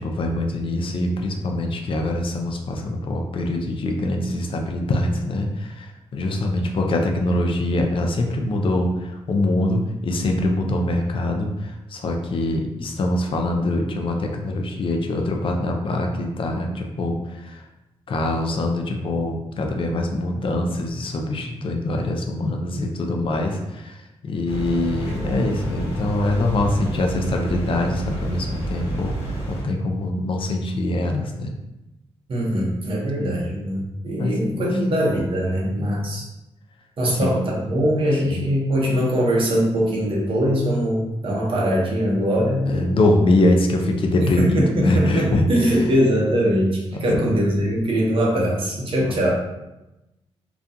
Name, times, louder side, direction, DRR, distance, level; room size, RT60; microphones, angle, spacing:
voice 1, 0.0-17.6 18.1-31.5 34.2-34.7 35.6-36.0 37.0-37.3 38.2-38.4 42.7-45.9 47.1-47.2 49.1-49.2, left 1 dB, 50° left, 2 dB, 0.4 m, -24 dB
sound 1, 24.5-29.6, right 1 dB, 75° left, 1.0 m, -29 dB
voice 2, 32.3-36.2 37.0-43.0 44.2-49.3, equal, 55° right, -4 dB, 0.8 m, -22 dB
2.4 x 2.2 x 2.7 m, 0.96 s
cardioid pair, 90°, 11 cm